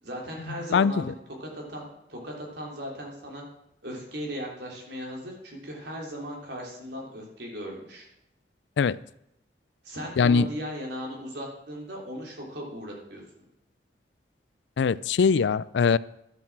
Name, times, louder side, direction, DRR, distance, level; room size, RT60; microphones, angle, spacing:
voice 1, 0.0-1.1 1.4-3.4 3.8-8.1 9.8-13.2, equal, 75° right, -1 dB, 3.2 m, -37 dB
voice 2, 0.7-1.0 8.8-9.0 10.2-10.5 14.8-16.0, left 5 dB, 80° left, 19 dB, 0.4 m, -21 dB
12.0 x 7.4 x 6.0 m, 0.80 s
head